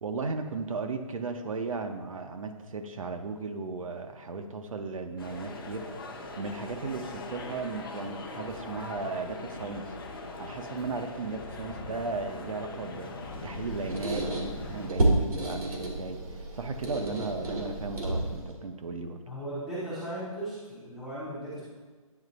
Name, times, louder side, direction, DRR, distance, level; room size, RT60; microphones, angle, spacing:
voice 1, 0.0-9.9 10.4-13.1 13.4-19.2, right 4 dB, 70° right, 6 dB, 0.7 m, -36 dB
sound 1, 5.2-14.9, left 3 dB, 40° left, 0.7 m, -41 dB
Squeak, 13.3-18.6, right 2 dB, 90° right, 1.7 m, -31 dB
voice 2, 19.3-21.6, right 1 dB, ahead, -13 dB, 0.5 m, -37 dB
9.3 x 3.2 x 3.9 m, 1.4 s
hypercardioid pair, 175°, 18 cm